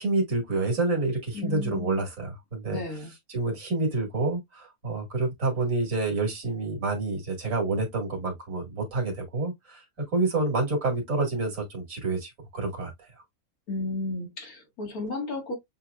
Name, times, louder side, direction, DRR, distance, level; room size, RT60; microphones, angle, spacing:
voice 1, 0.0-2.8 3.3-9.8 10.1-12.9, right 3 dB, 60° right, 2.4 m, -28 dB
voice 2, 1.3-2.0 2.7-3.1 13.7-15.5, left 2 dB, 70° left, 2.3 m, -33 dB
7.1 x 3.1 x 2.4 m
omnidirectional pair, 1.6 m